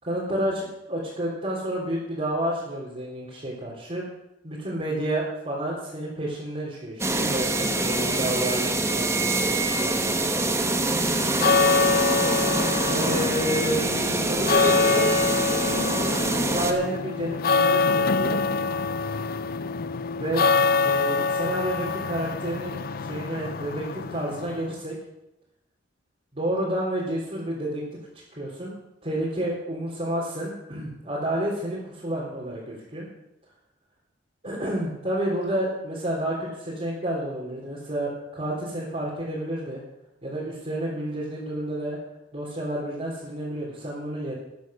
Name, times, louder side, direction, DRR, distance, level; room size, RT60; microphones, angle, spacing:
voice 1, 0.0-4.0 4.4-10.8 12.9-13.9 14.3-15.2 16.5-18.4 20.2-20.4 20.8-24.9 26.3-27.8 28.3-28.7 29.0-33.1 34.4-39.8 40.2-42.0 42.3-44.3, right 1 dB, 35° right, -8 dB, 3.9 m, -30 dB
sound 1, 7.0-16.7, right 2 dB, 15° right, 1.1 m, -25 dB
sound 2, 11.2-24.7, left 4 dB, 50° left, 0.5 m, -25 dB
13.5 x 9.3 x 6.6 m, 0.88 s
head